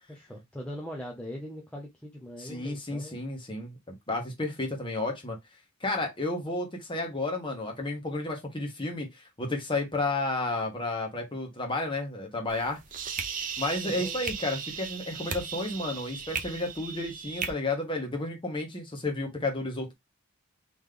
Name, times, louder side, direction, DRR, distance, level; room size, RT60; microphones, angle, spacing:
voice 1, 0.1-3.2 13.8-14.2, equal, 5° left, 0.7 m, -41 dB
voice 2, 2.4-5.4 5.8-9.1 9.4-12.8 13.6-19.9, left 2 dB, 25° left, 1.4 m, -32 dB
sound 1, 12.5-17.5, right 6 dB, 40° right, 0.6 m, -36 dB
3.9 x 3.2 x 3.3 m
head